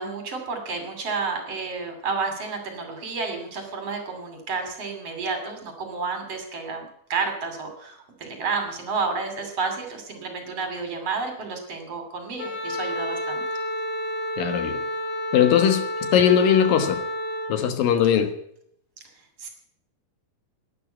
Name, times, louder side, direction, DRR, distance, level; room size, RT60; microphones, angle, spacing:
voice 1, 0.0-13.4 19.4-19.5, right 4 dB, 45° right, 3.6 m, -31 dB
Wind instrument woodwind instrument, 12.4-17.5, left 1 dB, 65° left, 3.1 m, -30 dB
voice 2, 14.4-14.8 15.3-17.0 17.5-18.3, left 8 dB, 85° left, 3.2 m, -20 dB
12.0 x 10.5 x 8.9 m
omnidirectional pair, 3.9 m